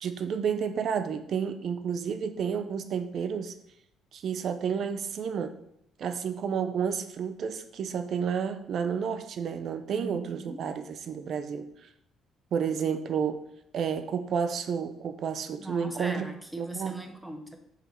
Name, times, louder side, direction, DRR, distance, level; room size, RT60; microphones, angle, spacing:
voice 1, 0.0-3.5 4.1-5.5 6.0-11.9 12.5-13.4 13.7-16.3 16.6-16.9, right 7 dB, 45° right, 10 dB, 0.5 m, -31 dB
voice 2, 9.9-10.6 15.6-17.6, right 1 dB, 5° right, 6 dB, 0.7 m, -39 dB
6.6 x 5.0 x 4.4 m, 0.78 s
cardioid pair, 160°, 0 cm